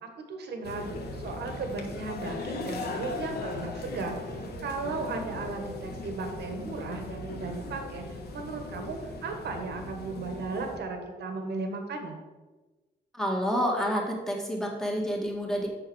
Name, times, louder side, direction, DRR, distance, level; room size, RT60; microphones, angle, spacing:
voice 1, 0.0-12.2, right 3 dB, 70° right, 4 dB, 1.6 m, -36 dB
cinema corredor, 0.6-10.8, left 2 dB, 65° left, 1.4 m, -38 dB
voice 2, 13.1-15.7, equal, 5° left, -2 dB, 2.0 m, -29 dB
7.2 x 6.6 x 6.3 m, 1.2 s
cardioid pair, 135°, 18 cm